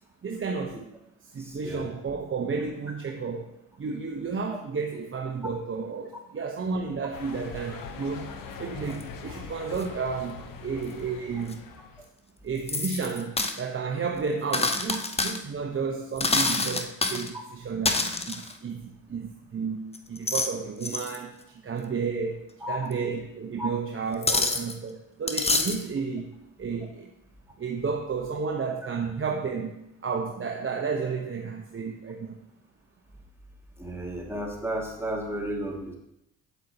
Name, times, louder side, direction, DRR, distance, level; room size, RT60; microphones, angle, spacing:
voice 1, 0.2-0.8 1.2-8.3 8.6-11.6 12.4-26.3 26.6-27.1 27.6-29.8 30.0-32.4, right 5 dB, 35° right, 1 dB, 0.9 m, -32 dB
voice 2, 1.4-1.8 22.6-22.9 23.6-23.7 24.3-24.4 33.8-36.0, equal, 5° right, -1 dB, 2.2 m, -33 dB
sound 1, 7.1-12.1, left 5 dB, 65° left, 1.0 m, -42 dB
sound 2, 9.0-9.1 9.8-9.9 11.5-11.6 12.7-13.6 14.5-15.4 16.2-17.3 17.8-18.5 19.9-20.5 20.8-21.2 22.9-23.0 24.2-24.7 25.3-25.8, left 3 dB, 15° left, 0.7 m, -27 dB
8.1 x 7.8 x 2.9 m, 0.85 s
hypercardioid pair, 60°, 36 cm